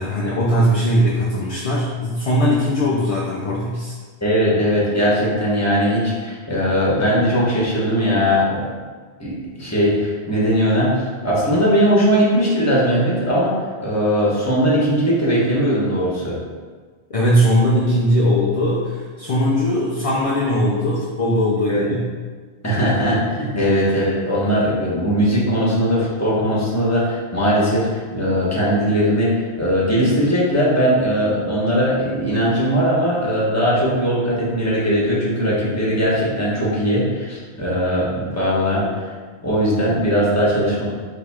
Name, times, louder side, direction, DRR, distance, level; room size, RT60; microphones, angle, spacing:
voice 1, 0.0-3.9 17.1-22.1 22.9-23.0 23.6-23.7, equal, 40° left, -5 dB, 0.5 m, -19 dB
voice 2, 4.2-8.7 9.2-16.4 21.7-21.9 22.6-39.1 39.4-40.9, equal, 15° left, -6 dB, 1.1 m, -19 dB
4.4 x 3.4 x 3.5 m, 1.5 s
omnidirectional pair, 1.1 m